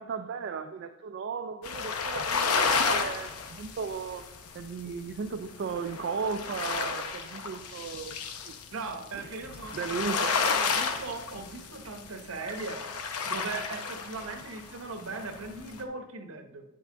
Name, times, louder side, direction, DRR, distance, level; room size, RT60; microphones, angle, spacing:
voice 1, 0.0-4.3 4.5-8.2 8.4-8.5 9.1-9.3 9.7-10.4, right 5 dB, 50° right, 0.3 m, -35 dB
sound 1, 1.6-14.8 15.1-15.8, left 5 dB, 90° left, 0.7 m, -32 dB
voice 2, 8.7-12.8 13.2-16.6, right 3 dB, 65° right, 0.9 m, -39 dB
9.2 x 5.5 x 3.7 m
head